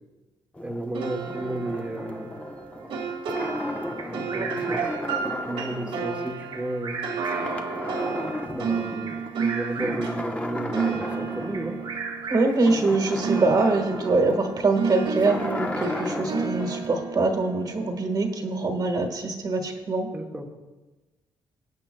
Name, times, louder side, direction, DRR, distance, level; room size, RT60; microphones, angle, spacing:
sound 1, 0.5-7.0 7.2-9.3 9.7-16.9, left 1 dB, 15° left, 0.9 m, -35 dB
voice 1, 0.6-2.3 4.1-4.8 5.2-7.1 8.5-11.8 20.1-20.5, right 1 dB, 10° right, -1 dB, 1.1 m, -33 dB
sound 2, 0.9-12.9 13.2-18.4, right 5 dB, 85° right, 1.8 m, -32 dB
Bird vocalization bird call bird song, 4.0-5.1 6.5-7.7 9.1-10.2 11.5-12.7, right 5 dB, 65° right, 1.4 m, -36 dB
voice 2, 12.3-20.1, right 3 dB, 45° right, 4 dB, 1.5 m, -24 dB
21.5 x 8.4 x 2.3 m, 1.2 s
cardioid pair, 100°, 9 cm